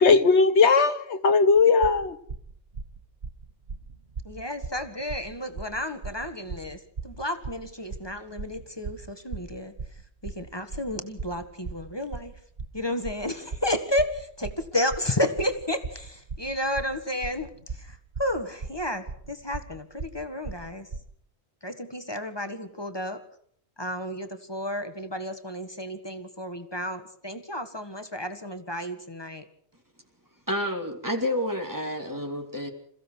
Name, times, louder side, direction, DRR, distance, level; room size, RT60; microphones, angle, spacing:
voice 1, 0.0-2.1, left 4 dB, 75° left, 1.4 m, -18 dB
sound 1, 1.6-21.0, right 4 dB, 55° right, 1.7 m, -38 dB
voice 2, 4.2-12.4 12.7-20.9 21.6-23.2 23.8-29.5, left 1 dB, 20° left, 1.8 m, -32 dB
voice 3, 30.5-32.7, left 1 dB, 15° right, 2.7 m, -29 dB
28.0 x 16.0 x 6.3 m
omnidirectional pair, 1.2 m